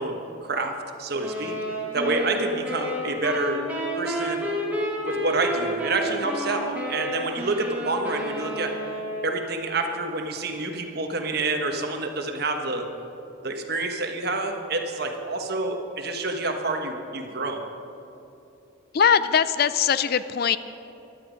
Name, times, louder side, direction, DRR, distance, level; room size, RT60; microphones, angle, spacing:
voice 1, 0.0-1.6 1.9-3.7 3.9-4.5 5.0-8.8 9.2-12.9 13.4-17.6, right 2 dB, 50° right, 4 dB, 1.3 m, -28 dB
sound 1, 1.2-9.6, equal, 10° right, 1.9 m, -31 dB
voice 2, 18.9-20.6, left 7 dB, 50° left, 14 dB, 0.4 m, -21 dB
16.5 x 11.5 x 5.1 m, 3.0 s
head